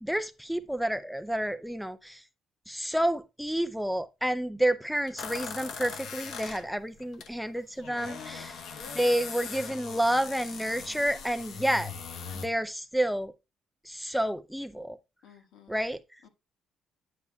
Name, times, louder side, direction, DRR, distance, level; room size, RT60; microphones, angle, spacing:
voice 1, 0.0-2.2 2.7-8.5 8.9-11.9 12.3-13.3 13.8-15.0 15.7-16.0, right 1 dB, ahead, 0.4 m, -29 dB
sound 1, 5.2-7.3 7.6-12.5, left 6 dB, 60° left, 1.0 m, -40 dB
voice 2, 7.7-9.1 15.2-15.7 16.2-16.3, left 5 dB, 85° left, 1.6 m, -49 dB
9.6 x 8.3 x 2.3 m
cardioid pair, 170°, 0 cm